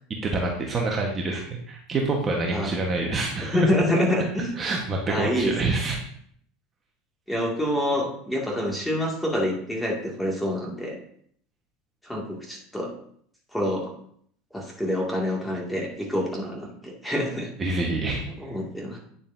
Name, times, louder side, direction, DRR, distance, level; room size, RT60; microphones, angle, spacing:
voice 1, 0.2-1.4 1.7-3.7 4.6-6.0 17.6-18.2, right 3 dB, 25° right, 0 dB, 1.2 m, -26 dB
voice 2, 3.5-4.5 5.1-5.8 7.3-11.0 12.0-12.9 13.5-13.9 14.5-17.5 18.2-19.0, left 1 dB, 5° left, -2 dB, 2.1 m, -27 dB
9.4 x 6.7 x 2.7 m, 0.63 s
supercardioid pair, 115°, 0 cm